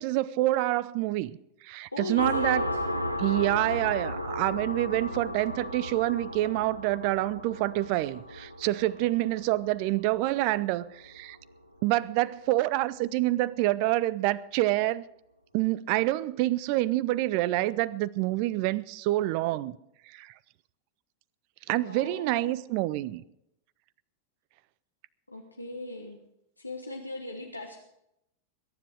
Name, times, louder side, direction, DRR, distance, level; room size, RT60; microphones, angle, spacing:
voice 1, 0.0-1.4 1.6-2.6 3.2-11.4 11.8-15.0 15.5-19.8 20.1-20.3 21.7-23.2, right 17 dB, 45° right, 0.6 m, -27 dB
voice 2, 1.9-2.8 21.8-22.6 25.3-26.2 26.6-27.8, left 2 dB, 85° left, 1.4 m, -39 dB
sound 1, 2.2-11.4, left 1 dB, 90° right, 1.1 m, -35 dB
21.5 x 10.0 x 4.7 m
figure-of-eight pair, 90°, 0 cm